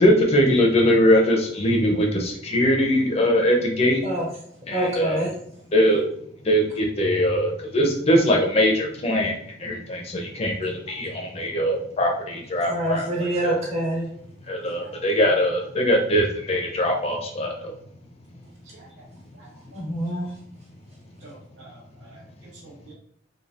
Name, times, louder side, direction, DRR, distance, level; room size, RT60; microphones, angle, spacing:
voice 1, 0.0-4.0 4.7-5.2 5.7-6.0 6.4-13.6 14.5-17.7, equal, 35° left, 1 dB, 0.5 m, -21 dB
voice 2, 4.7-5.3 12.7-14.1 19.7-20.3, right 1 dB, 35° right, -4 dB, 1.2 m, -26 dB
voice 3, 19.4-19.8 21.2-22.9, right 2 dB, 75° right, -2 dB, 1.0 m, -48 dB
3.2 x 2.3 x 2.4 m, 0.68 s
head